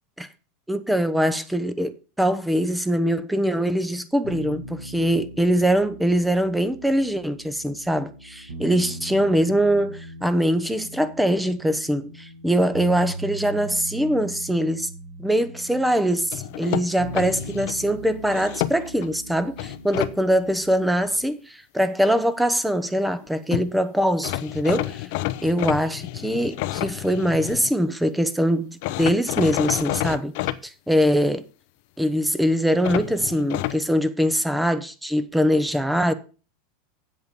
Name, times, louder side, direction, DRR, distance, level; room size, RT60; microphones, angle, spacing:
voice 1, 0.7-14.9 15.2-25.1 25.4-30.3 30.6-31.5 32.0-36.1, equal, 5° right, 0.9 m, -23 dB
sound 1, 4.2-21.2, right 1 dB, 80° right, 4.9 m, -39 dB
sound 2, 16.3-17.8 18.3-19.1 19.6-20.1 23.2-23.3 23.5-23.7 24.2-27.7 28.8-30.6 32.8-33.8, left 16 dB, 60° left, 0.6 m, -29 dB
8.2 x 7.9 x 5.3 m
supercardioid pair, 115°, 0 cm